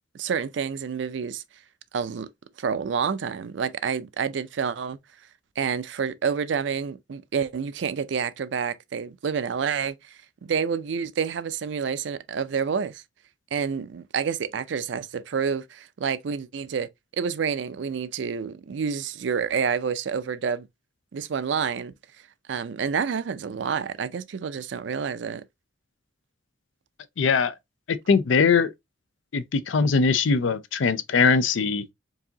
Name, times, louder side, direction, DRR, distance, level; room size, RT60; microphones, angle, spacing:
voice 1, 0.1-1.4 1.9-2.3 2.6-5.0 5.6-10.0 10.4-13.0 13.5-16.9 17.2-20.7 21.1-21.9 22.5-25.4, right 6 dB, 70° right, 0.4 m, -28 dB
voice 2, 27.2-27.5 28.1-28.7 29.3-31.8, left 5 dB, 90° left, 0.5 m, -21 dB
4.7 x 2.7 x 2.7 m
head